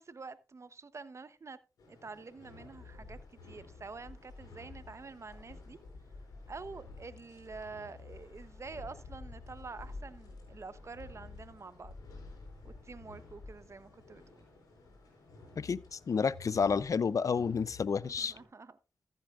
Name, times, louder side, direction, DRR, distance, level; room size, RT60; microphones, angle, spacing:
voice 1, 0.0-1.6 1.9-5.8 6.5-12.0 12.6-14.4 18.0-18.8, right 4 dB, 50° right, 0.9 m, -47 dB
sound 1, 1.8-18.5, left 3 dB, 90° left, 4.5 m, -51 dB
voice 2, 15.6-18.3, left 5 dB, 60° left, 0.5 m, -30 dB
14.5 x 8.1 x 2.5 m
cardioid pair, 40°, 6 cm